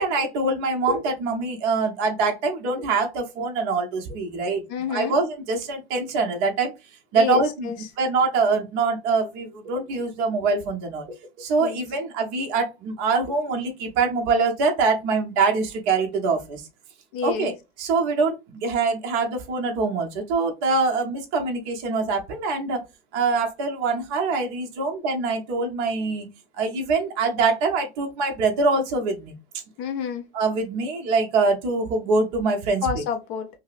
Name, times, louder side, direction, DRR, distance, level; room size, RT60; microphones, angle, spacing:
voice 1, 0.0-4.6 4.9-6.7 7.1-7.7 8.0-11.1 11.4-16.6 17.2-17.5 17.8-22.8 23.1-26.3 26.6-29.3 30.3-32.8, right 4 dB, 35° right, 0.8 m, -24 dB
voice 2, 4.7-5.2 7.1-7.9 11.6-11.8 17.1-17.5 29.8-30.3 32.8-33.5, left 7 dB, 25° left, 0.4 m, -29 dB
5.5 x 2.0 x 2.4 m
supercardioid pair, 165°, 33 cm